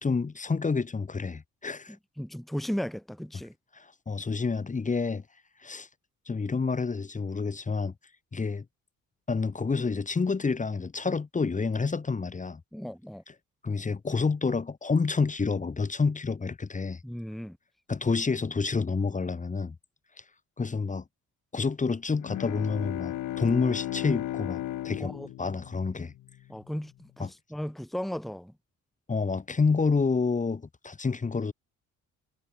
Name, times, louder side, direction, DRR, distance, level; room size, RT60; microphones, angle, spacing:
voice 1, 0.0-2.0 3.7-5.2 5.6-5.9 6.3-7.9 8.3-8.6 9.3-12.6 13.3-13.4 13.6-17.0 17.9-19.7 20.6-21.0 21.5-25.1 25.4-26.1 27.2-27.3 29.1-31.5, left 4 dB, 25° left, 1.5 m, -28 dB
voice 2, 2.2-3.5 12.7-13.2 17.0-17.6 25.0-25.3 26.5-28.5, equal, ahead, 1.4 m, -35 dB
Bowed string instrument, 22.1-26.7, left 14 dB, 85° left, 2.8 m, -35 dB
cardioid pair, 90°, 30 cm